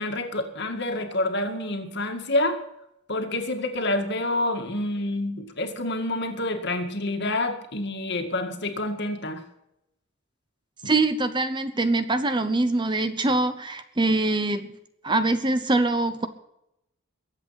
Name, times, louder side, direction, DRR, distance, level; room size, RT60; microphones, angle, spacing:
voice 1, 0.0-2.6 3.1-9.4, left 1 dB, 55° left, 5 dB, 2.0 m, -28 dB
voice 2, 10.9-14.7 15.0-16.3, right 2 dB, 20° right, 11 dB, 0.8 m, -23 dB
22.0 x 8.1 x 5.8 m, 0.83 s
head